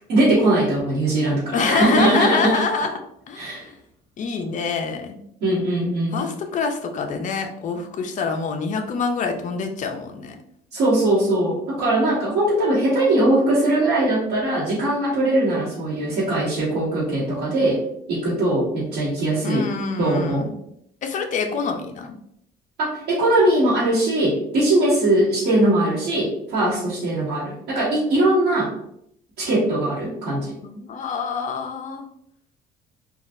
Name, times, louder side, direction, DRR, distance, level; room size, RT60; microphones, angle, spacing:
voice 1, 0.1-2.6 3.4-3.6 5.4-6.2 10.7-17.8 18.1-19.7 20.0-20.5 22.8-28.7 29.4-30.5, right 1 dB, 85° right, -10 dB, 1.3 m, -20 dB
voice 2, 1.5-3.0 3.3-3.8 4.2-5.2 6.1-10.4 19.4-20.5 21.0-22.1 30.6-32.1, left 5 dB, 50° left, 5 dB, 0.6 m, -26 dB
3.9 x 2.4 x 2.5 m, 0.74 s
cardioid pair, 110°, 17 cm